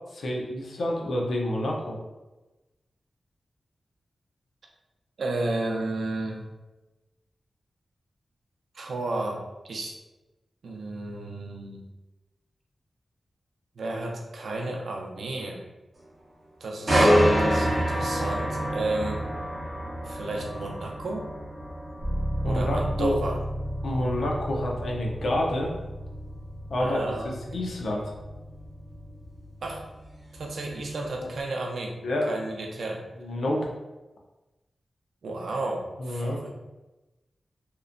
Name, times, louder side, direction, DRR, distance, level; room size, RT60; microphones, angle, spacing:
voice 1, 0.1-2.0 22.4-23.2 23.8-25.7 26.7-28.0 31.2-31.3 32.0-32.3 33.2-33.7 36.0-36.4, left 1 dB, 75° left, -1 dB, 0.5 m, -28 dB
voice 2, 5.2-6.5 8.7-10.0 10.6-11.8 13.8-15.6 16.6-19.2 20.0-21.3 22.4-23.4 26.8-27.6 29.6-29.8 30.3-32.0 32.3-33.0 35.2-36.5, right 2 dB, 85° right, 0 dB, 0.5 m, -32 dB
sound 1, 16.9-30.7 31.1-31.4, equal, 30° right, 0.8 m, -28 dB
sound 2, 22.0-29.7, equal, 5° left, 1.0 m, -34 dB
2.9 x 2.1 x 2.5 m, 1.1 s
wide cardioid pair, 160°, 0 cm